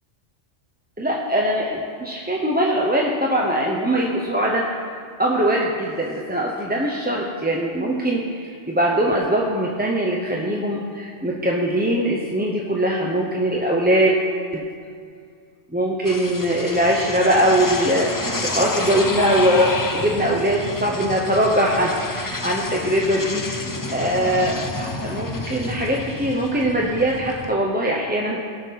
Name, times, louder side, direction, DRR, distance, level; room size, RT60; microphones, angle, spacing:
voice 1, 1.0-4.7 5.2-14.2 14.5-14.6 15.7-23.4 23.9-28.4, right 1 dB, 10° right, -3 dB, 0.7 m, -21 dB
sound 1, 16.0-27.5, left 2 dB, 25° left, 0.4 m, -30 dB
17.5 x 6.0 x 5.8 m, 2.3 s
omnidirectional pair, 1.2 m